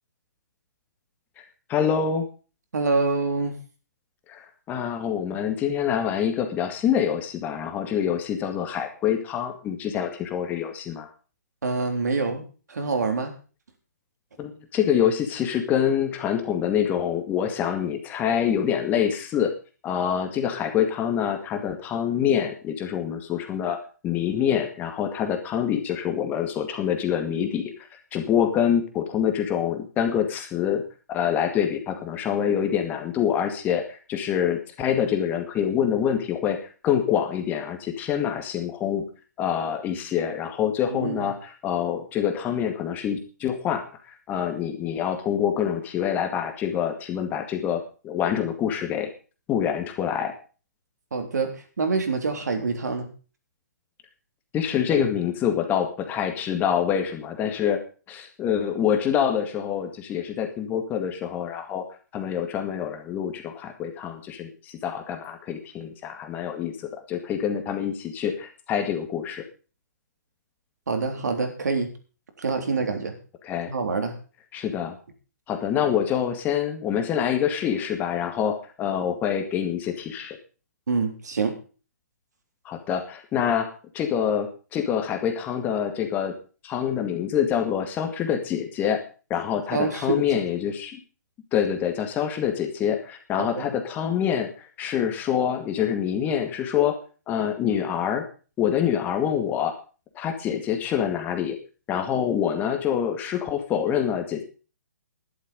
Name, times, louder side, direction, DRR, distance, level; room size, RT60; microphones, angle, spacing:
voice 1, 1.4-2.3 4.3-11.1 14.4-19.5 19.8-23.8 24.0-30.8 31.1-39.1 39.4-43.8 44.3-49.1 49.5-50.3 54.5-57.8 58.1-61.8 62.1-66.7 67.1-69.4 73.4-73.7 74.5-75.0 75.5-80.4 82.7-83.7 83.9-86.3 86.6-89.0 89.3-91.0 91.5-97.0 97.3-98.2 98.6-99.7 100.2-101.6 101.9-104.4, left 9 dB, 20° left, 5 dB, 2.0 m, -26 dB
voice 2, 2.7-3.6 11.6-12.4 12.7-13.3 40.9-41.3 51.1-53.1 70.9-71.9 72.4-73.1 73.7-74.2 80.9-81.6 89.7-90.3 93.4-93.7, right 4 dB, 70° right, 5 dB, 3.6 m, -26 dB
12.0 x 11.5 x 5.3 m, 0.36 s
hypercardioid pair, 140°, 9 cm